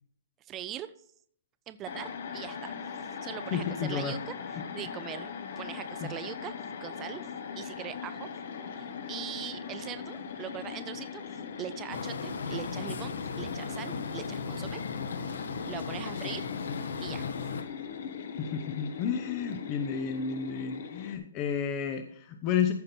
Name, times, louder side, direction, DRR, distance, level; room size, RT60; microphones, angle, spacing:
voice 1, 0.4-0.9 1.7-2.7 3.2-5.3 5.6-6.5 6.8-7.3 7.6-8.3 8.7-11.2 11.6-14.8 15.7-16.5 17.0-17.2, right 11 dB, 15° right, 11 dB, 0.4 m, -41 dB
sound 1, 1.9-21.2, left 6 dB, 40° left, 1.3 m, -40 dB
voice 2, 3.5-4.2 4.6-4.7 6.0-6.1 18.4-22.7, left 7 dB, 20° left, 6 dB, 0.7 m, -31 dB
sound 2, 11.9-17.6, left 5 dB, 70° left, 1.3 m, -36 dB
14.0 x 5.9 x 4.2 m, 0.63 s
hypercardioid pair, 175°, 0 cm